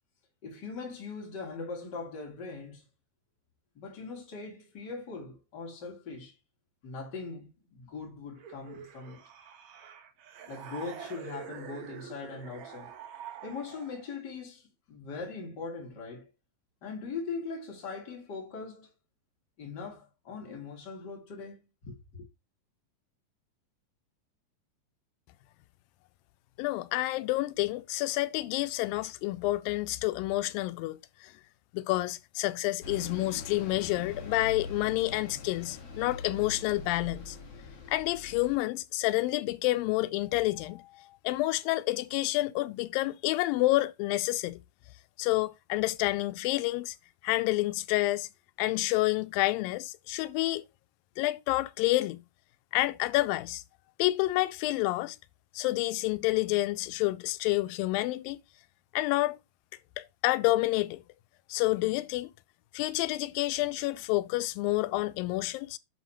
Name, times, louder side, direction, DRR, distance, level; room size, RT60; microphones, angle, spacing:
voice 1, 0.4-2.8 3.7-6.3 6.8-9.2 10.5-13.0 13.4-16.3 16.8-18.9 19.6-22.2, left 4 dB, 30° left, 3.0 m, -41 dB
sound 1, 8.4-14.2, right 8 dB, 65° right, 2.1 m, -46 dB
voice 2, 26.6-31.3 31.7-37.4 37.9-44.6 45.2-47.0 47.2-48.3 48.6-50.6 51.2-52.2 52.7-53.6 54.0-55.2 55.6-58.4 58.9-59.4 60.0-61.0 61.5-62.3 62.7-65.8, left 18 dB, 90° left, 2.3 m, -29 dB
Bus, 32.8-38.6, left 3 dB, 50° left, 2.5 m, -43 dB
10.5 x 4.1 x 4.3 m
omnidirectional pair, 4.0 m